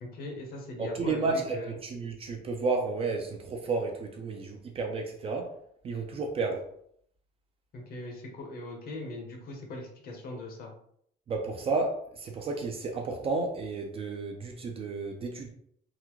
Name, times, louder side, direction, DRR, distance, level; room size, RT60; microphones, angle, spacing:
voice 1, 0.0-1.7 7.7-10.7, left 2 dB, 50° left, 2 dB, 0.8 m, -40 dB
voice 2, 0.8-5.5 5.8-6.7 11.3-15.5, right 3 dB, 30° right, 3 dB, 0.4 m, -32 dB
3.6 x 2.1 x 3.0 m, 0.68 s
cardioid pair, 160°, 20 cm